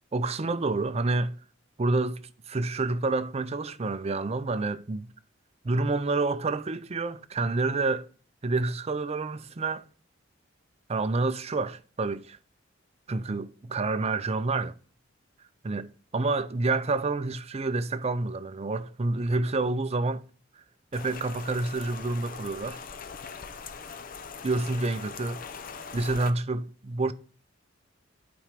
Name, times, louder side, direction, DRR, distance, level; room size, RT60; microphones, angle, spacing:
voice 1, 0.1-1.4 1.8-5.1 5.6-8.1 8.4-9.8 10.9-12.4 13.1-14.7 15.6-20.2 20.9-22.8 24.4-25.4 25.9-27.1, right 3 dB, 35° right, 0.5 m, -28 dB
Rain, 20.9-26.3, left 5 dB, 45° left, 0.7 m, -41 dB
9.2 x 4.3 x 5.0 m
head